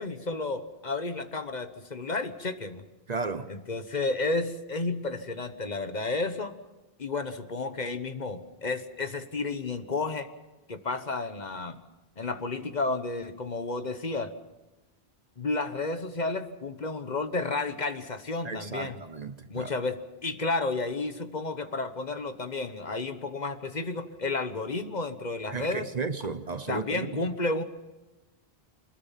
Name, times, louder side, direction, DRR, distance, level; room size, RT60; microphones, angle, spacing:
voice 1, 0.0-2.8 3.5-6.5 7.0-10.3 10.7-11.8 12.2-14.3 15.4-19.0 19.5-20.0 20.2-25.9 26.7-27.6, left 3 dB, 45° left, 1.2 m, -32 dB
voice 2, 3.1-3.5 18.4-19.7 25.5-27.2, right 4 dB, 45° right, 0.9 m, -34 dB
24.5 x 21.0 x 5.8 m
omnidirectional pair, 1.0 m